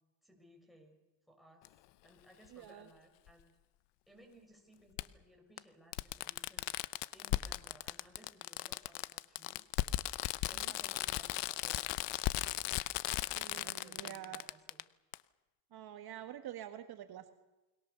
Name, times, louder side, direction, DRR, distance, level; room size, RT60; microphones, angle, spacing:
voice 1, 0.2-1.0 1.3-1.7 2.0-3.5 4.1-6.7 7.1-9.6 10.5-12.4 13.5-14.9, equal, ahead, 1 dB, 6.9 m, -61 dB
Fireworks, 1.7-1.8 3.3-3.4 5.0-5.1 5.6-5.7 5.9-14.8 15.1-15.2, left 17 dB, 70° left, 0.9 m, -36 dB
voice 2, 2.5-2.9 10.5-10.7 13.3-14.4 15.7-17.3, right 11 dB, 55° right, 8 dB, 1.7 m, -47 dB
29.0 x 22.0 x 7.0 m, 1.1 s
cardioid pair, 105°, 43 cm